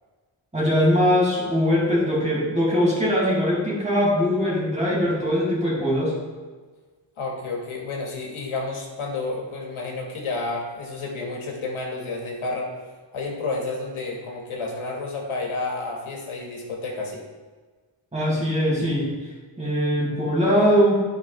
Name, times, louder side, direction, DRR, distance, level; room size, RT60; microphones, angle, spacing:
voice 1, 0.5-6.2 18.1-19.1 19.6-21.0, equal, 15° right, -6 dB, 2.4 m, -21 dB
voice 2, 7.2-12.7 13.1-17.2, left 3 dB, 80° left, -1 dB, 1.9 m, -30 dB
11.5 x 5.2 x 3.4 m, 1.4 s
wide cardioid pair, 135°, 49 cm